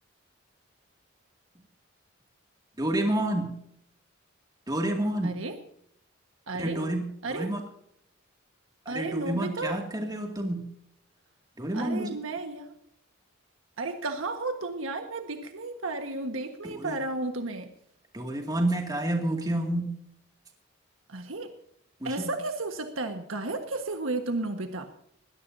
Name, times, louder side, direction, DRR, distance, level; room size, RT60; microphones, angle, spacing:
voice 1, 2.8-3.5 4.7-5.4 6.5-7.6 8.9-10.7 11.6-12.1 16.6-17.0 18.1-19.9 22.0-22.3, right 1 dB, 20° right, 2 dB, 2.3 m, -29 dB
voice 2, 5.2-5.6 6.5-6.9 7.2-7.5 8.9-9.8 11.7-12.8 13.8-17.7 21.1-21.5 22.0-24.9, right 2 dB, 80° right, 6 dB, 1.5 m, -33 dB
21.5 x 17.0 x 2.8 m, 0.72 s
head